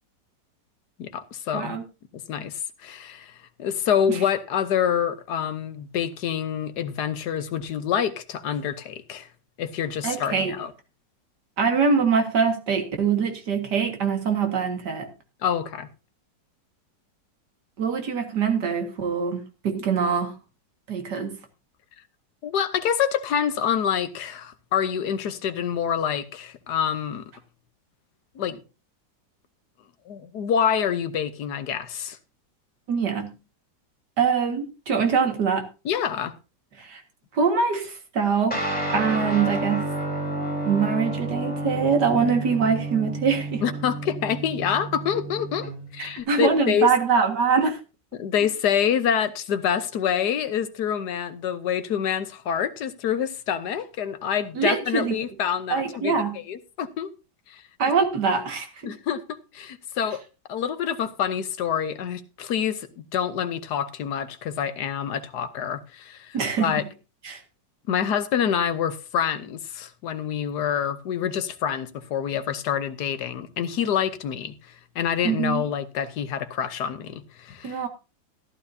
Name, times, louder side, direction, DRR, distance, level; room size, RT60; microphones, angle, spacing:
voice 1, 1.0-1.8 2.3-9.3 9.6-10.7 15.4-15.9 22.4-27.2 28.3-28.6 30.1-32.2 35.8-36.3 43.6-46.9 48.1-57.1 57.5-57.6 58.8-60.2 60.5-66.8 67.9-77.8, left 8 dB, 65° left, 1.5 m, -27 dB
voice 2, 1.5-1.8 4.1-4.2 10.0-10.5 11.6-15.1 17.8-20.3 20.9-21.4 32.9-33.4 34.2-35.6 36.8-37.0 37.3-38.6 38.9-39.9 40.7-43.6 46.0-47.8 54.6-55.2 55.7-56.4 57.8-58.9 66.3-66.8 67.2-67.4 75.2-75.6 77.6-77.9, right 5 dB, 65° right, 2.4 m, -23 dB
Guitar, 38.5-46.2, right 1 dB, 5° left, 3.7 m, -30 dB
14.5 x 12.0 x 2.7 m
omnidirectional pair, 1.9 m